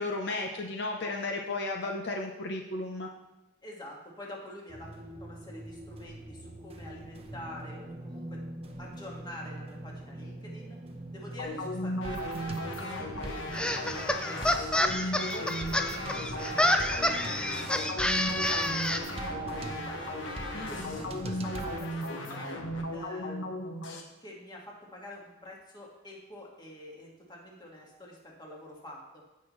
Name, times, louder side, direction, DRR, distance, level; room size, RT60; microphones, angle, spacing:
voice 1, 0.0-3.1 20.5-21.0, left 2 dB, 60° left, 1 dB, 0.8 m, -34 dB
voice 2, 3.6-8.4 8.8-10.8 11.1-13.9 14.3-19.0 19.3-20.1 20.7-22.5 22.9-23.7 24.2-29.2, left 1 dB, 25° left, -3 dB, 1.9 m, -47 dB
sound 1, 4.7-21.8, right 2 dB, 30° right, 0.8 m, -41 dB
sound 2, 11.4-24.0, left 1 dB, 80° left, 1.3 m, -36 dB
sound 3, 13.5-19.0, left 1 dB, 5° left, 0.4 m, -28 dB
15.0 x 5.6 x 3.2 m, 1.0 s
head